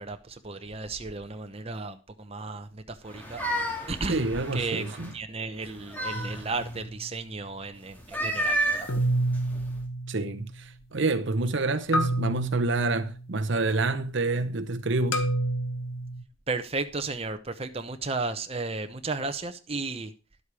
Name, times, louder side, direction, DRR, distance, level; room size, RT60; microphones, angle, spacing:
voice 1, 0.0-3.4 3.9-4.8 5.1-8.9 16.5-20.1, right 3 dB, 30° right, 0.9 m, -34 dB
sound 1, 3.1-5.1 5.6-6.8 7.9-9.8, right 1 dB, 10° left, 2.3 m, -32 dB
voice 2, 4.1-5.1 10.1-15.2, right 2 dB, 60° right, 0.8 m, -27 dB
sound 2, 6.1-7.0 8.9-10.6 11.9-13.4 15.1-16.2, right 1 dB, 75° left, 1.3 m, -29 dB
11.5 x 8.0 x 4.8 m
head